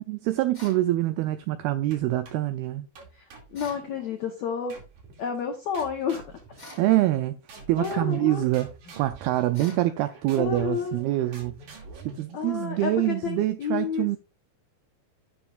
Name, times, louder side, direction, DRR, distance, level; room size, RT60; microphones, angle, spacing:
voice 1, 0.1-2.9 6.8-7.4 7.7-8.7 9.0-11.6 12.1-14.2, right 16 dB, 85° right, 2.2 m, -25 dB
sound 1, 0.5-0.9 3.5-3.9 6.6-6.9 9.5-9.9, left 1 dB, 10° left, 2.2 m, -46 dB
sound 2, 1.9-2.5 2.9-4.1 4.7-5.2 5.7-7.2 7.5-13.2, right 4 dB, 50° right, 3.5 m, -47 dB
voice 2, 3.1-4.8 5.2-6.4 7.8-8.5 10.4-11.0 12.3-14.1, left 7 dB, 85° left, 1.5 m, -30 dB
10.5 x 10.5 x 2.5 m
omnidirectional pair, 5.0 m